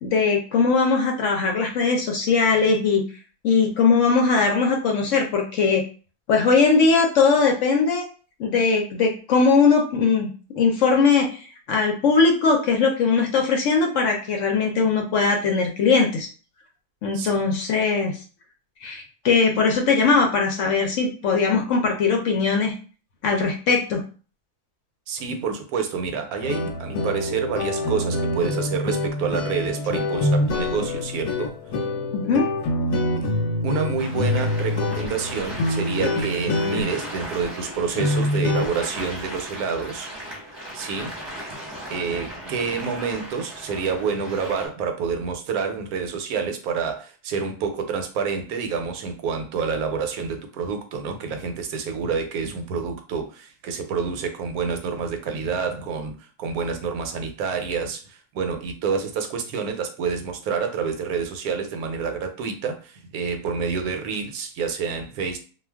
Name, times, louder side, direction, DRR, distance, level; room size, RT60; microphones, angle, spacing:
voice 1, 0.0-3.0 3.4-5.8 6.3-8.1 8.4-10.3 10.6-16.3 17.0-18.2 18.8-22.7 23.2-24.0 32.1-32.5, left 4 dB, 65° left, 2 dB, 0.8 m, -20 dB
voice 2, 25.1-31.5 33.6-40.1 40.7-41.2 41.9-65.4, right 5 dB, 80° right, 6 dB, 1.1 m, -28 dB
sound 1, 26.4-38.7, left 1 dB, 90° left, 1.1 m, -25 dB
sound 2, 34.0-44.7, right 1 dB, 20° right, 0.8 m, -37 dB
2.4 x 2.2 x 3.3 m, 0.37 s
omnidirectional pair, 1.6 m